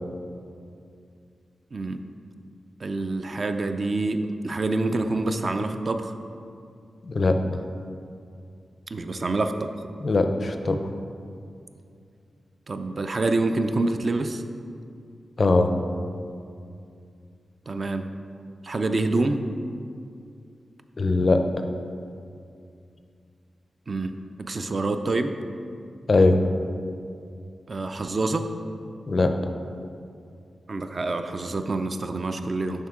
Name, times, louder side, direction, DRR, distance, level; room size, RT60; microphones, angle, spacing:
voice 1, 1.7-2.0 2.8-6.2 8.9-9.7 12.7-14.4 17.7-18.1 18.6-19.4 23.9-25.4 27.7-28.5 30.7-32.9, right 2 dB, 40° right, 7 dB, 0.3 m, -27 dB
voice 2, 7.0-7.3 10.0-10.8 15.4-15.7 21.0-21.4 26.1-26.4 29.1-29.3, left 3 dB, 40° left, 6 dB, 0.4 m, -20 dB
10.5 x 3.6 x 3.6 m, 2.4 s
wide cardioid pair, 140°, 0 cm